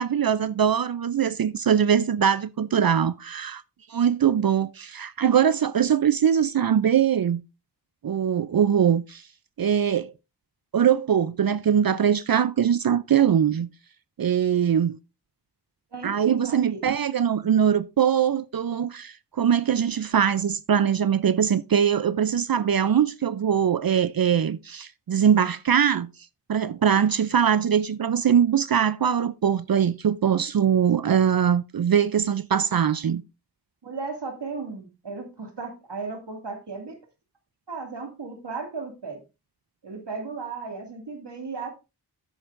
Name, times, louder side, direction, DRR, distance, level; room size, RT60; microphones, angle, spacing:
voice 1, 0.0-3.6 3.9-7.4 8.0-9.2 9.6-10.1 10.7-13.7 14.2-15.0 16.0-26.1 26.5-33.2, right 8 dB, 60° right, 0.5 m, -22 dB
voice 2, 15.9-17.0 33.8-37.0 37.7-39.2 39.8-41.7, right 4 dB, 80° right, 2.4 m, -35 dB
10.5 x 9.2 x 2.5 m
wide cardioid pair, 50°, 41 cm